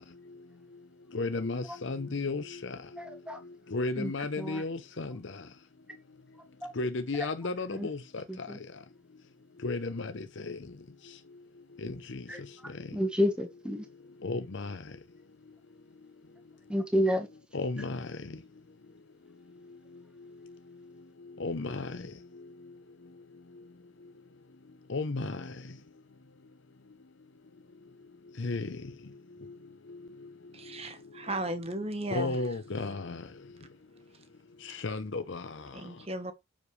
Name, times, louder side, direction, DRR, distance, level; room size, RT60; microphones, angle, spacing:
voice 1, 1.1-2.8 3.7-5.3 6.8-8.2 9.6-10.6 11.8-12.2 14.2-14.8 17.5-18.1 21.4-22.0 24.9-25.5 28.4-28.8 32.1-33.2 34.6-35.6, left 3 dB, 60° left, 0.7 m, -33 dB
voice 2, 3.0-3.4 4.0-4.1 4.4-4.6 6.6-6.7 7.7-7.9 8.3-8.6 12.3-12.4 12.9-13.8 16.7-17.3, equal, 5° right, 1.3 m, -29 dB
voice 3, 30.5-32.4 35.7-36.3, right 1 dB, 30° right, 1.2 m, -36 dB
9.8 x 7.3 x 3.2 m
head